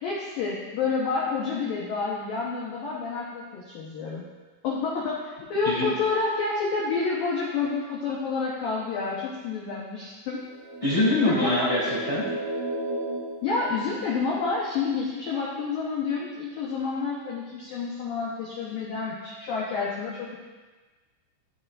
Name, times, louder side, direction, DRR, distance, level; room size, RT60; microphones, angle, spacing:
voice 1, 0.0-4.2 4.6-10.4 11.3-11.5 13.4-20.4, left 4 dB, 85° left, -5 dB, 2.0 m, -29 dB
sound 1, 10.5-14.4, right 1 dB, 80° right, 1.8 m, -34 dB
voice 2, 10.8-12.2, left 1 dB, 10° left, -8 dB, 1.6 m, -24 dB
14.5 x 6.3 x 2.6 m, 1.3 s
omnidirectional pair, 5.8 m